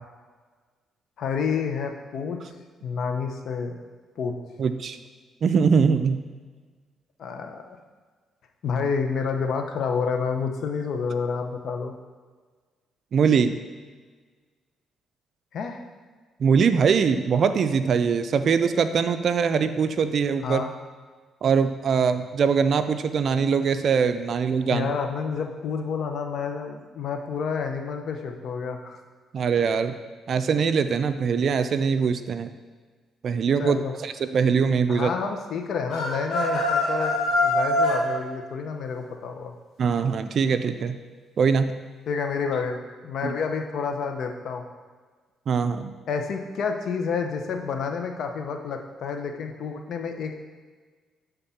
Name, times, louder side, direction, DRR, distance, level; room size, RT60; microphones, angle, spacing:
voice 1, 1.2-2.4 2.8-3.8 4.2-4.3 7.2-7.8 8.6-11.9 15.5-15.8 20.4-20.7 24.7-29.0 33.6-33.9 34.9-39.5 42.1-42.8 43.0-44.6 46.1-50.3, left 5 dB, 65° left, 4 dB, 0.7 m, -29 dB
voice 2, 4.6-5.0 5.4-6.2 13.1-13.6 16.4-20.6 21.4-24.9 29.3-30.0 30.3-32.5 33.2-35.1 39.8-41.0 41.4-41.8 43.2-43.3 45.5-46.0, right 6 dB, 55° right, 10 dB, 0.4 m, -22 dB
sound 1, 35.9-38.1, left 1 dB, 80° left, 1.5 m, -23 dB
6.9 x 3.6 x 5.7 m, 1.4 s
cardioid pair, 90°, 0 cm